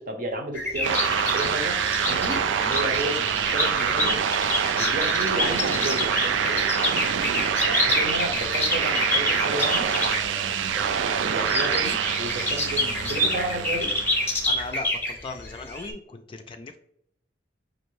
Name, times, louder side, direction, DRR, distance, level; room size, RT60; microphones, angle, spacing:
voice 1, 0.0-1.8 2.0-4.2 4.8-7.2 7.6-13.9, right 1 dB, 50° right, 4 dB, 0.8 m, -33 dB
sound 1, 0.5-10.2 11.4-15.9, left 1 dB, 10° left, 0.7 m, -27 dB
sound 2, 0.8-14.5, right 7 dB, 85° right, 0.4 m, -26 dB
voice 2, 14.4-16.8, left 3 dB, 30° left, 6 dB, 0.3 m, -37 dB
5.3 x 2.6 x 3.1 m, 0.73 s
head